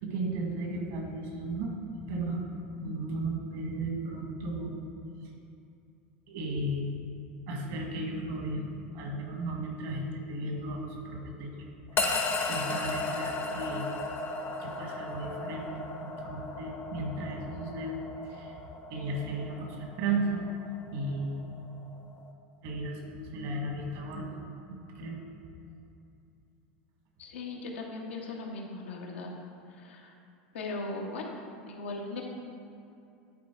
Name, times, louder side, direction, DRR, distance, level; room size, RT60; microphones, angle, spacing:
voice 1, 0.0-1.7 2.0-2.5 2.8-4.8 5.2-5.3 6.3-6.9 7.4-8.6 8.9-11.6 11.9-13.9 14.6-15.7 16.0-18.0 18.2-18.6 18.9-20.4 20.9-21.4 22.6-24.4 24.7-25.2, right 2 dB, 65° right, 1 dB, 1.6 m, -35 dB
sound 1, 12.0-22.3, left 3 dB, 35° left, 0.8 m, -36 dB
voice 2, 27.2-29.3 29.7-30.1 30.5-31.3 31.6-32.2, left 3 dB, 90° left, -1 dB, 1.2 m, -38 dB
10.5 x 4.2 x 4.5 m, 2.6 s
hypercardioid pair, 105°, 6 cm